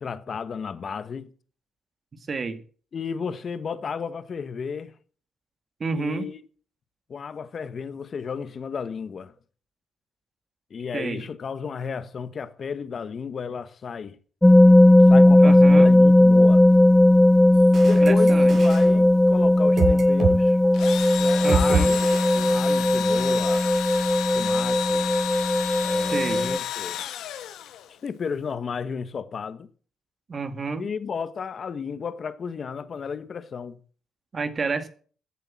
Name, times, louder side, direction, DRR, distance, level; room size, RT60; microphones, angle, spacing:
voice 1, 0.0-1.3 2.9-4.9 5.9-6.4 7.1-9.3 10.7-14.1 15.1-16.6 17.8-20.6 21.2-22.1 22.5-23.8 24.3-25.1 25.8-27.0 28.0-29.7 30.8-33.8, left 6 dB, 50° left, 1.4 m, -33 dB
voice 2, 2.3-2.6 5.8-6.3 10.9-11.2 15.4-16.0 17.9-18.5 21.4-21.9 26.1-26.5 30.3-30.9 34.3-34.9, right 4 dB, 40° right, 2.1 m, -29 dB
sound 1, 14.4-26.6, left 1 dB, 10° left, 0.7 m, -17 dB
sound 2, 17.5-20.4 20.6-20.9 21.5-23.0, right 4 dB, 60° right, 5.9 m, -28 dB
Engine / Drill, 20.7-28.1, left 11 dB, 85° left, 1.6 m, -31 dB
14.5 x 8.4 x 7.5 m
cardioid pair, 85°, 0 cm